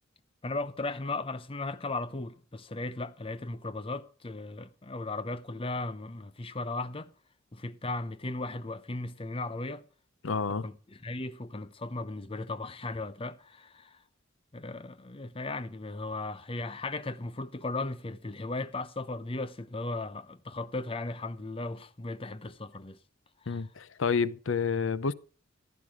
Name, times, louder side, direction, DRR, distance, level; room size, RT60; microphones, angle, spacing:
voice 1, 0.4-7.1 7.5-9.8 10.6-14.0 14.5-23.0 23.4-23.7, left 2 dB, 30° left, 0.8 m, -36 dB
voice 2, 10.2-10.6 23.5-25.1, left 5 dB, 85° left, 0.7 m, -29 dB
14.5 x 11.5 x 4.9 m
head